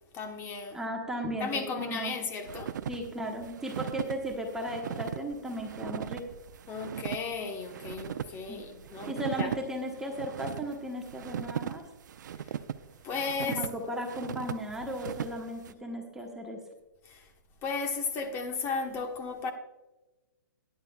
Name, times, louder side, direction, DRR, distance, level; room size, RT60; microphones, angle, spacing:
voice 1, 0.1-0.8 1.4-2.8 6.7-9.5 13.0-13.6 17.1-17.2 17.6-19.5, left 4 dB, 25° left, 1.2 m, -35 dB
voice 2, 0.7-2.1 2.9-6.2 8.5-8.6 9.0-11.8 13.4-16.6, equal, 5° right, 1.2 m, -36 dB
sound 1, 2.5-15.7, right 9 dB, 65° right, 0.6 m, -39 dB
14.5 x 10.5 x 2.3 m
hypercardioid pair, 140°, 10 cm